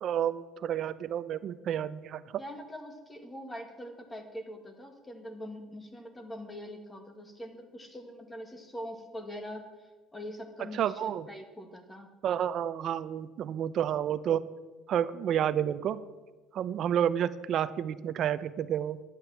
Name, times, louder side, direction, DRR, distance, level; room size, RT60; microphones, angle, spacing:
voice 1, 0.0-2.2 10.7-11.3 12.2-14.4 14.9-16.0 16.5-19.0, right 9 dB, 45° right, 14 dB, 0.6 m, -30 dB
voice 2, 2.4-12.1, equal, 10° left, 5 dB, 1.8 m, -43 dB
11.5 x 9.4 x 7.1 m, 1.3 s
cardioid pair, 145°, 0 cm